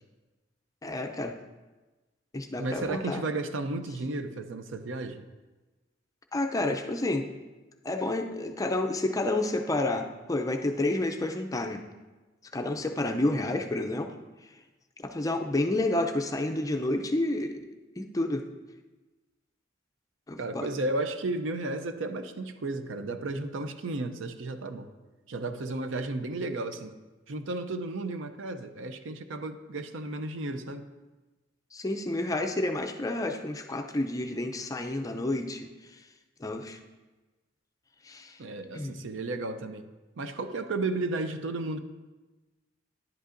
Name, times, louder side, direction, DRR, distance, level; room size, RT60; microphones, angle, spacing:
voice 1, 0.8-1.4 2.3-3.2 6.3-7.3 7.8-11.8 12.5-14.1 15.0-17.7 18.0-18.5 20.3-20.8 31.7-35.7 36.4-36.8 38.0-38.4 38.7-39.0, left 2 dB, 20° left, 5 dB, 0.4 m, -30 dB
voice 2, 2.6-5.2 20.4-24.9 25.3-26.9 27.3-30.9 38.4-39.9 40.2-41.8, right 2 dB, 75° right, 9 dB, 0.5 m, -33 dB
10.5 x 8.1 x 2.5 m, 1.2 s
head